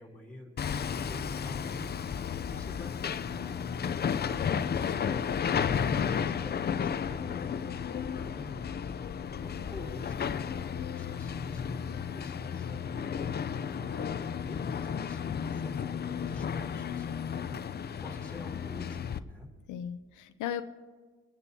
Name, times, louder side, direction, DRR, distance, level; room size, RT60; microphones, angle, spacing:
voice 1, 0.0-1.9 2.5-5.2 5.7-19.5, left 1 dB, 5° left, -3 dB, 3.3 m, -47 dB
Hammer, 0.6-19.2, left 7 dB, 35° left, 0.5 m, -33 dB
voice 2, 19.7-20.6, left 9 dB, 85° left, 10 dB, 0.6 m, -36 dB
23.5 x 9.8 x 2.8 m, 1.4 s
cardioid pair, 90°, 30 cm